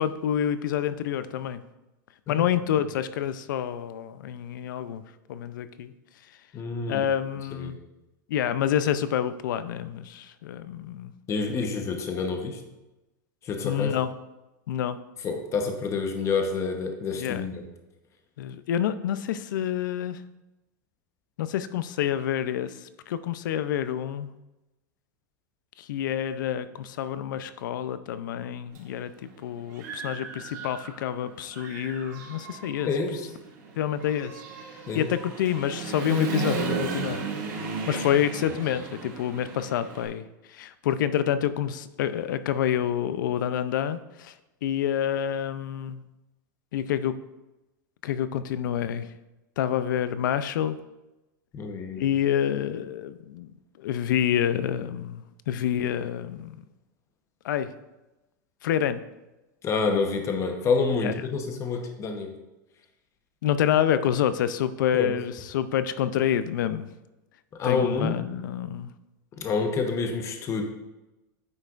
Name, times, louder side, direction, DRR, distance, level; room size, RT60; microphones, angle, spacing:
voice 1, 0.0-1.6 2.3-5.0 5.3-5.9 6.9-7.8 8.3-11.1 13.6-14.1 14.7-15.0 17.2-17.5 18.4-20.2 21.4-24.3 25.8-29.1 29.4-32.9 33.8-34.4 34.9-37.2 37.9-44.3 44.6-46.0 46.7-47.1 48.0-49.1 49.6-50.8 52.0-53.5 53.8-56.6 57.4-57.7 58.6-59.0 61.0-61.1 63.4-66.9 67.6-68.9, left 10 dB, 85° left, 13 dB, 0.5 m, -28 dB
voice 2, 6.5-7.1 7.5-7.7 11.3-12.6 13.4-13.9 15.2-17.6 32.9-33.3 34.9-35.1 37.9-38.0 51.5-52.0 59.6-62.4 64.9-65.1 67.6-68.2 69.4-70.6, left 4 dB, 30° left, 4 dB, 1.0 m, -28 dB
Human voice / Motorcycle, 28.8-28.9 29.3-31.1 31.5-40.1, right 4 dB, 80° right, 2.2 m, -35 dB
9.2 x 5.5 x 2.5 m, 1.0 s
supercardioid pair, 135°, 10 cm